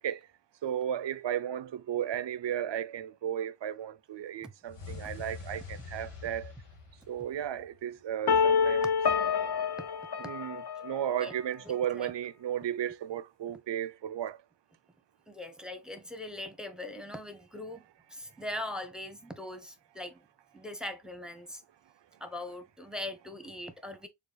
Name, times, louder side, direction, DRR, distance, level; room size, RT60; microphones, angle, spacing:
voice 1, 0.6-6.5 7.1-8.9 10.2-14.4, right 10 dB, 60° right, 0.6 m, -34 dB
sound 1, 4.7-7.8, left 5 dB, 90° left, 1.4 m, -45 dB
sound 2, 8.3-11.2, left 6 dB, 55° left, 0.6 m, -27 dB
voice 2, 11.6-12.1 15.3-20.2 20.5-21.6 22.2-24.1, left 1 dB, ahead, 0.9 m, -41 dB
6.8 x 2.3 x 2.3 m
cardioid pair, 75°, 49 cm